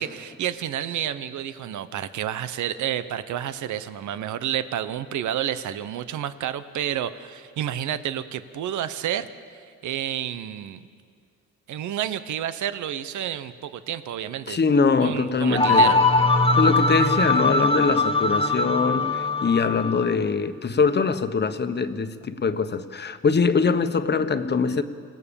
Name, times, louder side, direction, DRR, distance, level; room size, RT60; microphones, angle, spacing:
voice 1, 0.0-10.8 11.7-14.6 15.0-16.0, right 10 dB, 75° right, 13 dB, 1.0 m, -30 dB
voice 2, 14.5-16.0 16.5-24.8, left 5 dB, 35° left, 9 dB, 1.3 m, -23 dB
sound 1, 15.6-20.1, left 2 dB, 20° left, 1.5 m, -21 dB
27.5 x 17.5 x 7.2 m, 2.1 s
cardioid pair, 90°, 30 cm